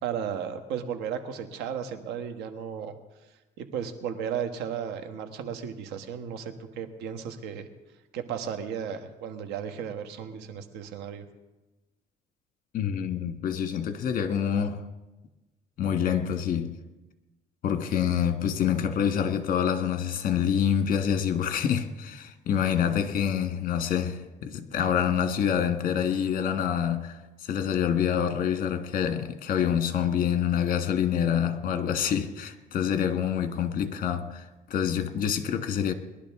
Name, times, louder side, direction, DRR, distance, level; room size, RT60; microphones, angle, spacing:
voice 1, 0.0-2.9 3.6-7.7 8.1-11.2, right 8 dB, 90° right, 1.4 m, -34 dB
voice 2, 12.7-14.8 15.8-16.8 17.6-35.9, left 8 dB, 55° left, 1.5 m, -27 dB
21.5 x 11.5 x 3.7 m
cardioid pair, 110°, 17 cm